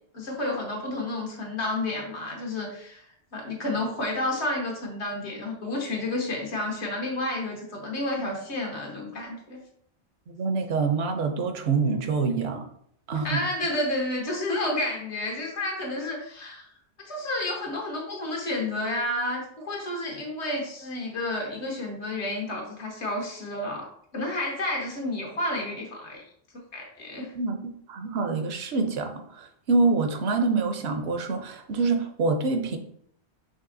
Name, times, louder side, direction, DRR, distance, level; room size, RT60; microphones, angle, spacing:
voice 1, 0.1-3.0 3.3-9.6 13.2-16.7 17.0-26.2 26.7-27.3, left 1 dB, 85° left, 0 dB, 1.4 m, -30 dB
voice 2, 10.3-12.7 13.1-13.4 27.4-27.6 27.9-32.8, right 4 dB, 70° right, 6 dB, 0.9 m, -26 dB
5.4 x 3.2 x 2.6 m, 0.66 s
omnidirectional pair, 1.1 m